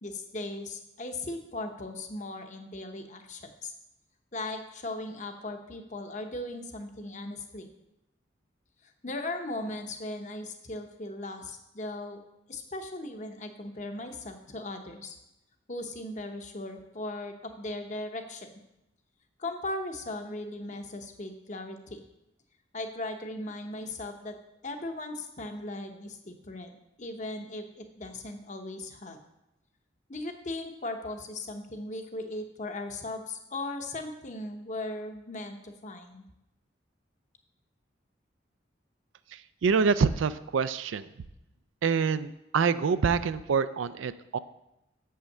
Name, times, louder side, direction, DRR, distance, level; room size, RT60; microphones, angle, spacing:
voice 1, 0.0-3.7 4.3-7.7 8.8-12.2 12.5-15.2 15.7-18.5 19.4-22.0 22.7-24.4 24.6-26.7 27.0-29.2 30.1-36.2, left 2 dB, 40° left, 6 dB, 0.8 m, -38 dB
voice 2, 39.6-41.1 41.8-44.4, right 5 dB, 85° right, 14 dB, 0.4 m, -26 dB
7.4 x 5.7 x 6.5 m, 0.89 s
head